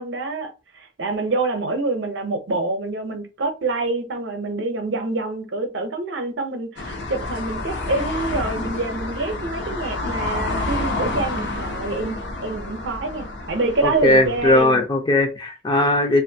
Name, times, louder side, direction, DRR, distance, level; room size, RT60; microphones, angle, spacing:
voice 1, 0.0-14.8, right 2 dB, 65° right, 0.6 m, -26 dB
sound 1, 6.8-14.6, left 2 dB, 60° left, 0.6 m, -29 dB
voice 2, 13.8-16.2, left 2 dB, 25° left, 0.4 m, -18 dB
2.6 x 2.5 x 2.7 m
head